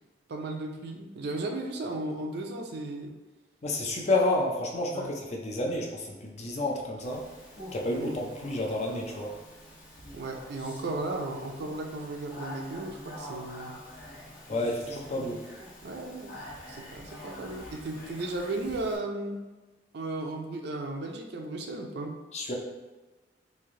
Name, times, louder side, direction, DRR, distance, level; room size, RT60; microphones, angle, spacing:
voice 1, 0.3-3.2 4.9-5.1 8.0-8.1 10.1-13.7 15.1-15.4 15.8-16.3 16.7-19.4 19.9-22.2, right 2 dB, 65° right, 3 dB, 0.5 m, -35 dB
voice 2, 3.6-7.3 7.7-9.3 14.5-15.4 22.3-22.5, left 2 dB, 40° left, 0 dB, 0.5 m, -30 dB
Speech, 7.0-19.0, left 1 dB, 55° left, 1.0 m, -46 dB
3.2 x 2.6 x 3.7 m, 1.2 s
head